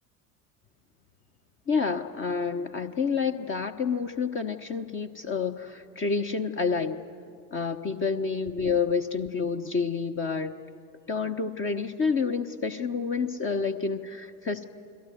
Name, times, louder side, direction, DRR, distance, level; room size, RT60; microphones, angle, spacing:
voice 1, 1.7-7.0 7.5-10.5 11.1-14.6, left 5 dB, 25° left, 6 dB, 1.1 m, -28 dB
29.5 x 22.0 x 7.8 m, 2.6 s
figure-of-eight pair, 70°, 44 cm